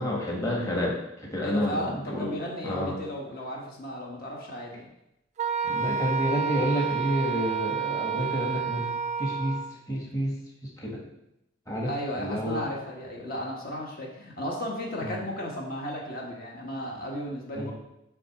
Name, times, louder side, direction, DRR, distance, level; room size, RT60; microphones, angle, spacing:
voice 1, 0.0-2.3 2.6-2.9 5.6-8.9 9.2-9.6 9.9-10.4 10.6-11.0 11.7-12.7 15.0-15.2 17.5-17.7, equal, 20° left, -3 dB, 1.4 m, -29 dB
voice 2, 1.4-4.9 11.8-17.7, equal, 55° left, -2 dB, 1.4 m, -34 dB
Wind instrument woodwind instrument, 5.4-9.8, right 7 dB, 40° right, 0.3 m, -30 dB
7.6 x 3.6 x 5.9 m, 0.84 s
head